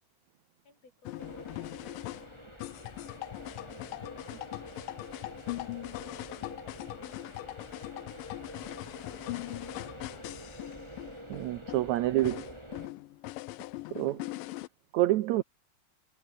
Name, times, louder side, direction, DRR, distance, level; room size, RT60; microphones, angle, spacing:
voice 1, 0.6-5.0 6.0-8.1 8.6-8.8, left 3 dB, 45° left, 7.2 m, -61 dB
sound 1, 1.0-14.7, left 18 dB, 80° left, 2.3 m, -41 dB
sound 2, 1.2-12.9, right 1 dB, 5° right, 5.3 m, -47 dB
voice 2, 11.3-12.4 13.9-14.2 14.9-15.4, right 15 dB, 75° right, 1.7 m, -27 dB
omnidirectional pair, 4.1 m